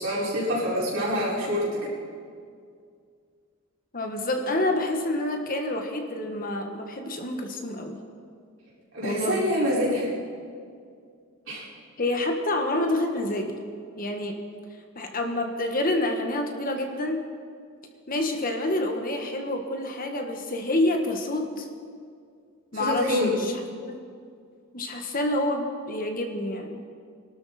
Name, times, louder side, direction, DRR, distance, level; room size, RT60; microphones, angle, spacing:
voice 1, 0.0-1.9 8.9-10.1 11.5-11.6 22.7-23.3, equal, 65° right, -7 dB, 5.2 m, -26 dB
voice 2, 3.9-8.0 9.0-9.4 12.0-13.5 14.0-14.4 14.9-17.2 18.1-21.7 22.7-23.6 23.8-24.0 24.7-26.8, left 1 dB, 40° left, 4 dB, 1.4 m, -28 dB
23.5 x 12.5 x 4.3 m, 2.2 s
head